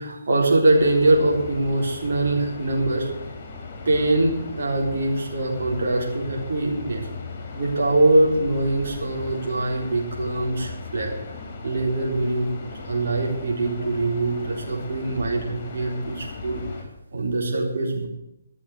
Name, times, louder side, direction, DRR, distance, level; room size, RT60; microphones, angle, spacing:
voice 1, 0.0-3.1 3.8-7.1 7.5-11.1 11.6-16.6 17.1-18.1, right 2 dB, 65° right, -1 dB, 3.9 m, -23 dB
sound 1, 0.7-16.8, left 4 dB, 35° left, 3.6 m, -37 dB
13.0 x 7.1 x 9.4 m, 0.88 s
hypercardioid pair, 150°, 0 cm